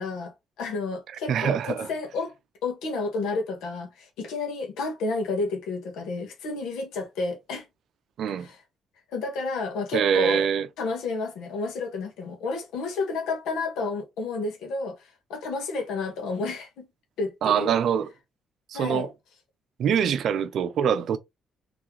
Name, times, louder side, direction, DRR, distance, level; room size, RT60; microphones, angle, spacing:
voice 1, 0.0-2.3 2.6-7.7 8.4-8.6 9.1-10.4 10.8-16.9 17.2-17.7 18.7-19.1, left 3 dB, 85° left, 1.4 m, -31 dB
voice 2, 1.3-1.9 8.2-8.5 9.9-10.7 17.4-18.1 18.7-19.1 19.8-21.2, right 8 dB, 70° right, 0.5 m, -24 dB
3.8 x 3.2 x 3.0 m
cardioid pair, 90°, 0 cm